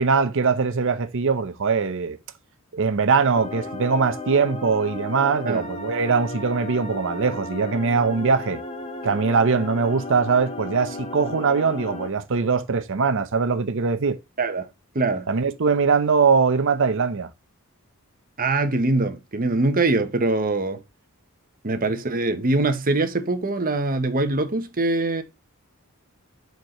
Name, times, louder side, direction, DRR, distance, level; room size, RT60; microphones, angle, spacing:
voice 1, 0.0-2.2 2.7-8.6 9.0-14.2 15.3-17.3, right 5 dB, 60° right, 0.7 m, -21 dB
sound 1, 3.3-12.1, left 2 dB, 25° left, 1.2 m, -34 dB
voice 2, 14.4-14.7 14.9-15.3 18.4-20.8 21.6-25.2, right 2 dB, 40° right, 1.0 m, -23 dB
4.7 x 4.6 x 5.3 m
head